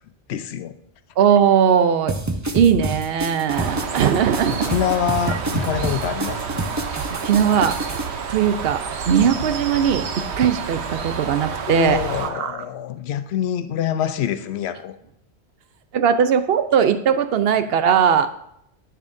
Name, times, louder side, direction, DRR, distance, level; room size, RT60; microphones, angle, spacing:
voice 1, 0.3-0.8 4.5-6.7 11.7-15.0, left 9 dB, 80° left, 0.9 m, -25 dB
voice 2, 1.2-2.1 2.5-4.7 5.3-5.4 7.1-7.8 8.3-12.6 15.9-18.3, right 8 dB, 70° right, 0.8 m, -19 dB
sound 1, 2.1-8.0, right 2 dB, 20° right, 0.6 m, -28 dB
Bird, 3.5-12.3, right 6 dB, 90° right, 1.1 m, -29 dB
10.5 x 8.4 x 2.6 m
omnidirectional pair, 1.1 m